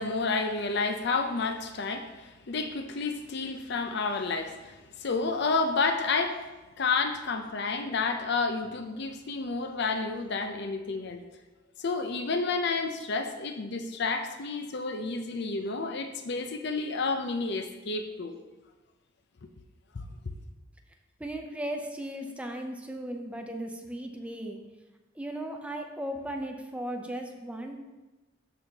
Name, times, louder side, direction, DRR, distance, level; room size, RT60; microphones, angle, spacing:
voice 1, 0.0-6.5 6.8-11.2 11.8-18.4 19.9-20.0, left 4 dB, 60° left, 6 dB, 0.6 m, -30 dB
voice 2, 21.2-24.6 25.2-27.8, right 1 dB, 5° right, 3 dB, 0.6 m, -36 dB
12.5 x 4.2 x 2.9 m, 1.2 s
head